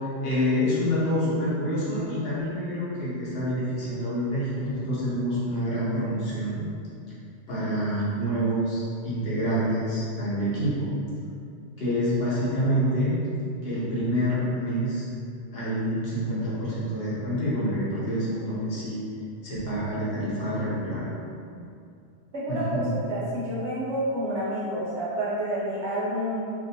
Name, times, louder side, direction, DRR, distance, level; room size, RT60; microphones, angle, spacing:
voice 1, 0.2-6.7 7.5-10.9 11.8-13.2 13.6-15.0 15.5-19.0 19.4-21.0 22.5-22.9, equal, 55° left, -9 dB, 1.0 m, -27 dB
voice 2, 22.3-26.4, right 1 dB, 75° right, -8 dB, 1.1 m, -29 dB
2.6 x 2.5 x 2.6 m, 2.4 s
omnidirectional pair, 1.2 m